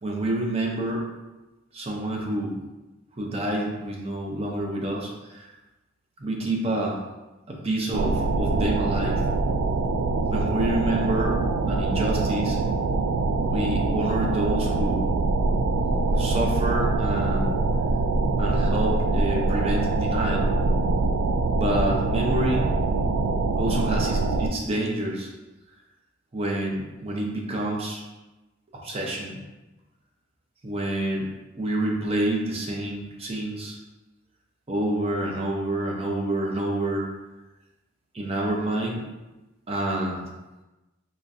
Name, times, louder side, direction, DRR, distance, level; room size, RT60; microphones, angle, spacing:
voice 1, 0.0-1.1 1.7-2.6 3.2-5.5 6.2-7.0 7.5-9.2 10.3-11.4 11.7-12.6 13.5-15.1 16.1-17.5 18.4-20.5 21.5-22.8 23.6-25.3 26.3-28.0 28.8-29.4 30.6-31.3 31.6-33.8 34.7-37.1 38.1-39.0 39.7-40.3, right 1 dB, 30° right, -1 dB, 0.6 m, -28 dB
sound 1, 7.9-24.5, right 3 dB, 85° right, 0.3 m, -24 dB
3.8 x 3.1 x 2.7 m, 1.1 s
head